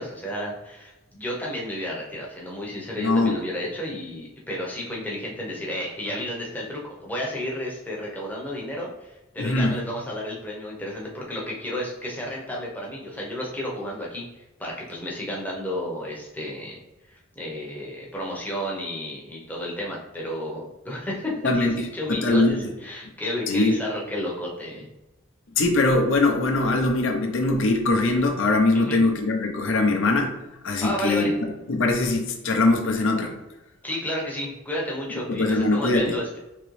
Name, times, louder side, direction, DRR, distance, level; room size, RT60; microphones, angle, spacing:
voice 1, 0.0-14.2 14.6-16.8 17.1-24.9 28.7-29.0 30.8-31.3 33.8-36.4, left 1 dB, 10° left, -3 dB, 0.7 m, -32 dB
voice 2, 3.0-3.4 9.4-9.8 21.4-21.7 22.1-22.7 23.5-23.8 25.6-30.3 30.6-31.3 31.7-33.4 35.3-36.1, left 2 dB, 65° left, 2 dB, 0.6 m, -21 dB
3.7 x 2.9 x 3.1 m, 1.0 s
head